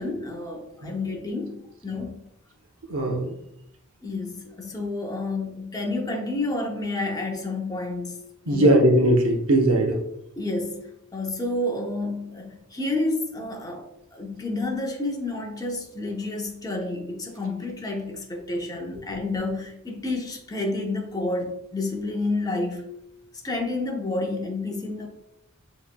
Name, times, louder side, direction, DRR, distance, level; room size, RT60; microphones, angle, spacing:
voice 1, 0.0-2.2 4.0-8.8 10.4-22.9 23.4-25.1, left 2 dB, 20° left, 0.7 m, -30 dB
voice 2, 2.9-3.3 8.5-10.0, right 1 dB, 80° right, 0.8 m, -20 dB
7.2 x 3.1 x 2.2 m
head